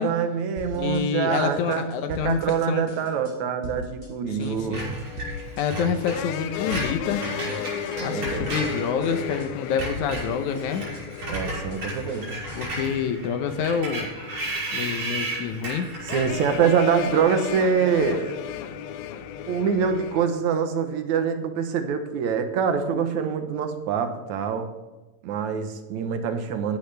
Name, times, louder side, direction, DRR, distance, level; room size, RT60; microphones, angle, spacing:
voice 1, 0.0-5.0 8.0-8.5 11.3-12.3 16.1-18.4 19.5-24.7 25.2-26.8, right 6 dB, 65° right, 8 dB, 2.0 m, -25 dB
sound 1, 0.6-1.0 1.3-2.6 2.9-3.3 3.6-4.1 4.4-5.6 5.9-6.4 6.7-7.2 7.5-8.7 9.0-9.5 9.8-12.8, left 1 dB, 20° right, 4.0 m, -40 dB
voice 2, 0.7-2.4 2.7-2.8 4.3-4.9 5.6-7.2 8.0-10.9 12.6-14.1 14.7-15.9, left 7 dB, 75° left, 8 dB, 1.9 m, -27 dB
sound 2, 4.0-20.3, left 9 dB, 90° left, 2.6 m, -36 dB
Screech, 4.7-9.4 9.7-17.1, right 2 dB, 50° right, 6.5 m, -34 dB
15.5 x 11.0 x 3.4 m, 1.2 s
omnidirectional pair, 4.3 m